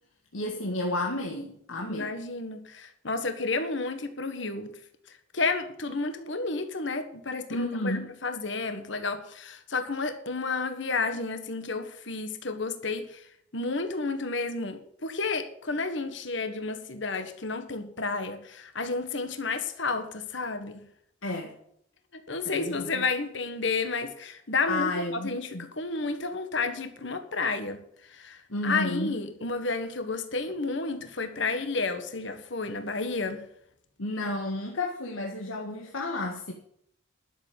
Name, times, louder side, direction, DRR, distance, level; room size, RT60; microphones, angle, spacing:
voice 1, 0.3-2.1 7.5-8.1 21.2-21.5 22.4-23.0 24.7-25.6 28.5-29.1 34.0-36.5, left 2 dB, 90° left, 1 dB, 1.7 m, -32 dB
voice 2, 1.9-4.7 5.1-13.3 13.5-20.8 22.3-33.4, left 3 dB, 60° left, 8 dB, 1.5 m, -31 dB
12.0 x 7.3 x 8.8 m, 0.69 s
head